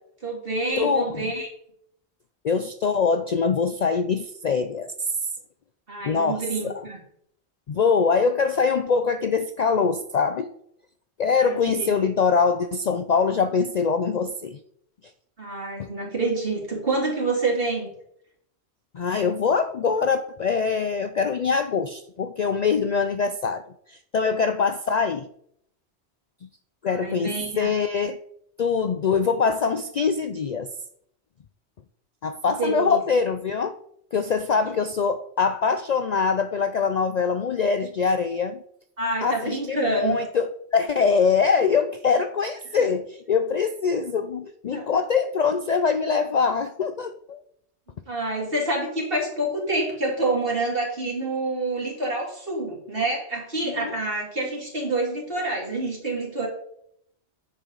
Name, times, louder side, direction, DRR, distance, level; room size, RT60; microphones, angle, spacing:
voice 1, 0.2-1.5 5.9-7.0 11.4-11.9 15.4-17.9 26.9-27.7 32.6-33.0 39.0-40.2 42.8-42.9 44.7-44.9 48.1-56.5, right 2 dB, 55° right, -2 dB, 3.2 m, -27 dB
voice 2, 0.8-1.3 2.4-5.1 6.0-6.7 7.7-10.5 11.2-14.6 15.8-15.9 18.9-23.6 23.9-25.3 26.8-28.2 28.6-30.7 32.2-33.8 34.1-38.6 39.2-47.4 53.6-53.9, left 5 dB, 55° left, 9 dB, 0.5 m, -23 dB
9.6 x 7.1 x 3.9 m, 0.70 s
omnidirectional pair, 1.2 m